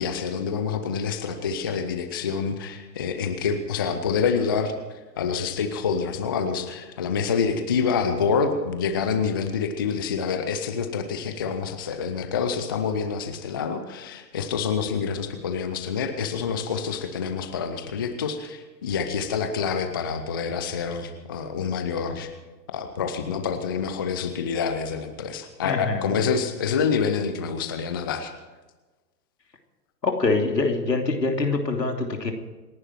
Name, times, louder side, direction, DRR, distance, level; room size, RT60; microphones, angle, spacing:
voice 1, 0.0-4.7 5.2-22.3 22.7-28.3, left 6 dB, 15° left, 8 dB, 0.5 m, -27 dB
voice 2, 25.6-26.1 30.0-32.3, left 3 dB, 75° left, 3 dB, 3.0 m, -24 dB
27.5 x 11.0 x 4.5 m, 1.2 s
figure-of-eight pair, 120°, 50 cm